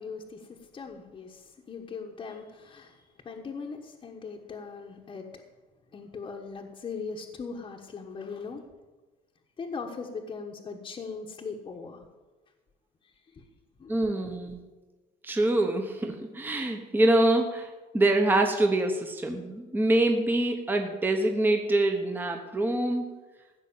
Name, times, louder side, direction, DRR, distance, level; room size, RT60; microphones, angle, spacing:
voice 1, 0.0-5.3 5.9-8.6 9.6-12.1 13.3-13.4 13.8-13.9, left 5 dB, 25° left, 0 dB, 1.3 m, -39 dB
voice 2, 13.9-14.6 15.2-23.1, right 1 dB, 10° right, 3 dB, 1.2 m, -25 dB
15.5 x 6.2 x 8.8 m, 1.2 s
cardioid pair, 155°, 18 cm